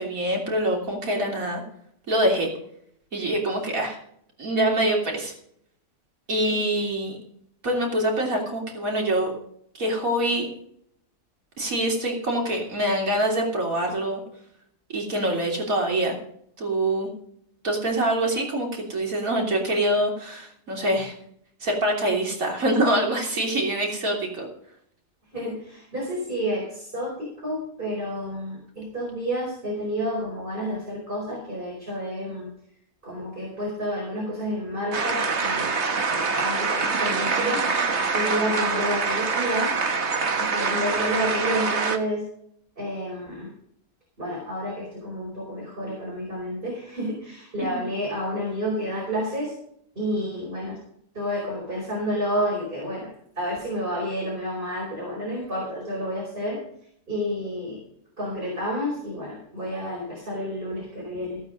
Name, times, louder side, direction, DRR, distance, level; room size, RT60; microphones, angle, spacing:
voice 1, 0.0-1.6 2.1-2.5 3.1-4.0 4.4-5.3 6.3-7.2 7.6-9.4 9.7-10.5 11.6-14.2 14.9-16.2 16.6-17.1 17.6-21.1 21.6-24.5 47.6-47.8, right 1 dB, 85° right, 0 dB, 3.6 m, -25 dB
voice 2, 25.3-32.5 33.0-35.7 36.1-37.7 38.1-39.7 40.4-42.2 42.8-43.5 44.2-49.5 49.9-50.8 51.1-56.6 57.1-57.8 58.2-61.4, equal, 40° right, -3 dB, 5.1 m, -30 dB
sound 1, 34.9-42.0, right 4 dB, 55° right, 1.6 m, -25 dB
16.0 x 8.7 x 5.3 m, 0.67 s
omnidirectional pair, 1.4 m